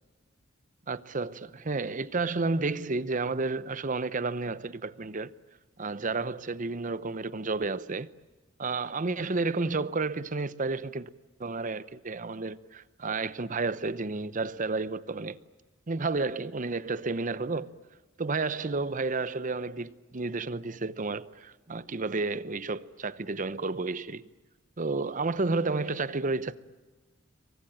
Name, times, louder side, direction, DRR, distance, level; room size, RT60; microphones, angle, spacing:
voice 1, 0.9-5.3 5.8-8.1 8.6-11.1 11.4-15.4 15.9-17.7 18.2-24.3 24.8-26.5, right 3 dB, 45° right, 0.8 m, -31 dB
27.5 x 23.5 x 8.9 m
head